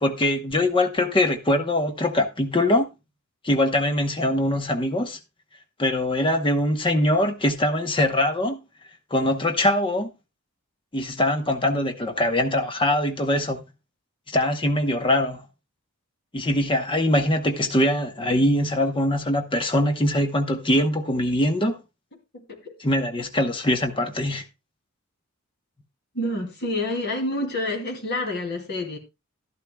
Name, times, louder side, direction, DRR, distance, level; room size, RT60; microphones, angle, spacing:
voice 1, 0.0-2.9 3.4-5.2 5.8-8.6 9.1-10.1 10.9-13.6 14.3-15.4 16.3-21.8 22.8-24.4, left 1 dB, 25° left, 0.9 m, -22 dB
voice 2, 22.3-22.7 26.1-29.0, left 1 dB, 50° left, 2.6 m, -28 dB
12.5 x 11.5 x 2.2 m
head